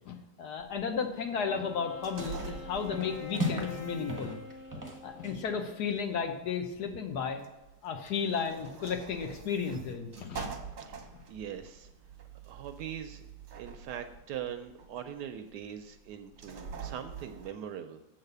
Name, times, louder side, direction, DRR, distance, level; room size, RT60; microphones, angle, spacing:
voice 1, 0.0-4.4 5.0-7.4 7.8-10.5, left 6 dB, 65° left, 5 dB, 1.2 m, -34 dB
sound 1, 0.6-17.5, right 6 dB, 50° right, 0.9 m, -47 dB
Wind instrument woodwind instrument, 1.4-5.9, left 5 dB, 90° left, 2.0 m, -46 dB
sound 2, 1.7-1.9 2.2-2.6 2.9-3.8 4.1-5.5, equal, 15° right, 0.6 m, -37 dB
voice 2, 11.3-11.9 12.5-13.2 13.6-18.0, right 9 dB, 75° right, 7 dB, 1.0 m, -41 dB
7.2 x 4.0 x 6.6 m, 0.99 s
omnidirectional pair, 2.1 m